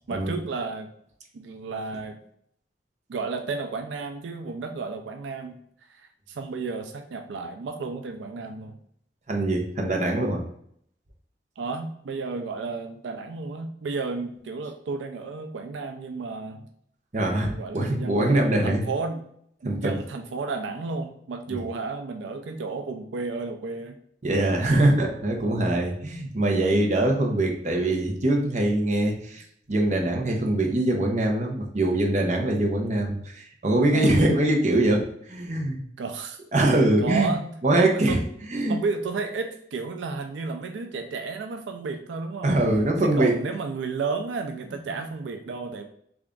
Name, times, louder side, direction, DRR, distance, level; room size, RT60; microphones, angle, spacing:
voice 1, 0.1-0.9 1.3-2.2 3.1-5.6 5.9-8.8 11.6-16.7 17.3-19.2 19.6-24.0 32.4-32.7 33.9-34.2 36.0-36.4 37.0-38.2 38.7-42.6 43.0-45.8, right 4 dB, 85° right, 5 dB, 0.4 m, -32 dB
voice 2, 9.3-10.4 17.1-18.8 19.6-19.9 24.2-35.8 36.5-37.3 37.6-38.2 38.5-38.8 42.4-43.3, right 1 dB, 40° right, 1 dB, 0.7 m, -23 dB
3.3 x 2.4 x 3.7 m, 0.68 s
head